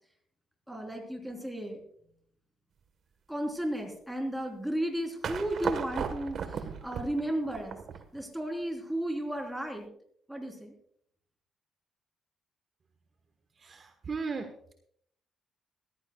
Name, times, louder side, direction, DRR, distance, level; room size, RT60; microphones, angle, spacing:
voice 1, 0.7-1.8 3.3-7.8 8.1-9.9 10.3-10.7, right 1 dB, 5° right, 2 dB, 3.7 m, -34 dB
sound 1, 5.2-8.2, right 6 dB, 60° right, 1.3 m, -36 dB
voice 2, 13.6-14.5, right 4 dB, 45° right, 5 dB, 1.3 m, -36 dB
20.0 x 15.0 x 2.3 m, 0.67 s
cardioid pair, 90°, 0 cm